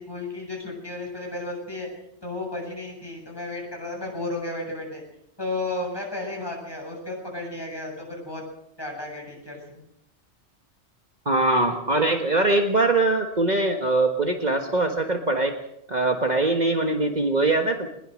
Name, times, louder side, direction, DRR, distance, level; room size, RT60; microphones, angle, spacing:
voice 1, 0.0-1.9 2.2-5.0 5.4-8.4 8.8-9.8, left 2 dB, 20° left, 0 dB, 7.4 m, -33 dB
voice 2, 11.2-15.6 15.9-17.9, right 2 dB, 40° right, 4 dB, 1.7 m, -22 dB
21.0 x 20.5 x 6.5 m, 0.76 s
omnidirectional pair, 1.2 m